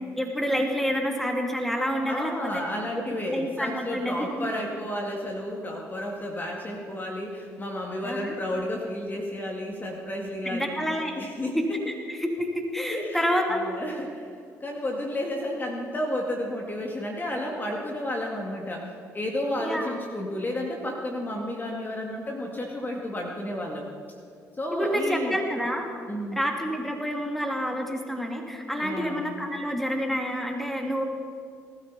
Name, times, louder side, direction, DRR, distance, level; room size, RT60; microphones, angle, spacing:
voice 1, 0.2-2.6 3.3-4.5 8.0-8.3 10.4-11.3 11.5-13.6 19.6-20.0 24.7-25.9 26.4-31.0, equal, 5° left, 2 dB, 2.8 m, -28 dB
voice 2, 2.1-10.8 11.2-11.8 12.9-13.2 13.5-14.3 14.6-23.9 24.6-25.4 26.1-26.4 28.8-29.2, left 1 dB, 25° left, 0 dB, 2.2 m, -32 dB
20.0 x 13.0 x 4.2 m, 2.3 s
hypercardioid pair, 55°, 7 cm